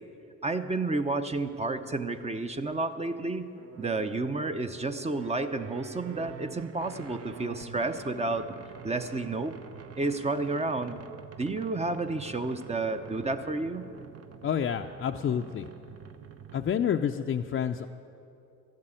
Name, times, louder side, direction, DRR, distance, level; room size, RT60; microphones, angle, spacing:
voice 1, 0.4-3.5 3.8-8.5 8.8-9.5 10.0-11.0 11.4-13.8, right 3 dB, 20° right, 8 dB, 0.7 m, -31 dB
sound 1, 3.6-16.9, right 7 dB, 55° right, 0.8 m, -47 dB
voice 2, 14.4-15.7 16.5-17.9, left 8 dB, 40° left, 3 dB, 0.5 m, -29 dB
13.5 x 7.6 x 9.0 m, 2.7 s
cardioid pair, 90°, 30 cm